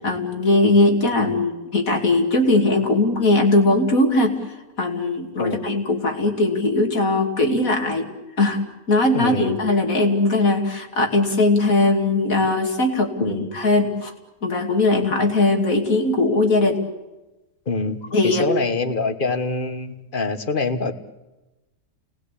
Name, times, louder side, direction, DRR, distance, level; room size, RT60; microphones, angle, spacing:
voice 1, 0.0-4.3 4.8-8.1 8.4-8.6 8.9-14.1 14.4-16.8 18.1-18.5, left 2 dB, 65° left, 3 dB, 3.1 m, -19 dB
voice 2, 9.1-9.6 13.2-13.5 17.7-18.0 18.2-20.9, left 3 dB, 35° left, 9 dB, 1.5 m, -24 dB
29.0 x 19.5 x 8.4 m, 1.1 s
omnidirectional pair, 1.6 m